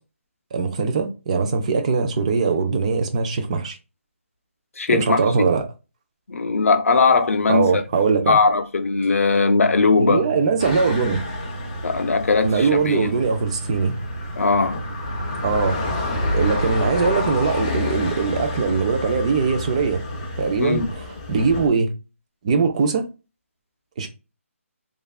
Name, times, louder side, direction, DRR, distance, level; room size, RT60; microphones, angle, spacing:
voice 1, 0.5-3.8 4.9-5.7 7.5-8.4 10.0-11.2 12.4-14.0 15.4-20.0 20.4-20.8 21.3-21.9 22.4-23.1 24.0-24.1, right 5 dB, 30° right, 0.4 m, -21 dB
voice 2, 4.8-5.2 6.3-7.8 8.3-10.2 11.8-13.1 14.4-14.8 20.6-20.9, left 4 dB, 80° left, 0.5 m, -19 dB
sound 1, 7.8-7.9 8.5-8.6 8.8-21.0, right 2 dB, 55° right, 0.9 m, -36 dB
sound 2, 10.6-21.7, left 2 dB, 25° left, 0.5 m, -29 dB
3.2 x 2.4 x 2.3 m
hypercardioid pair, 165°, 8 cm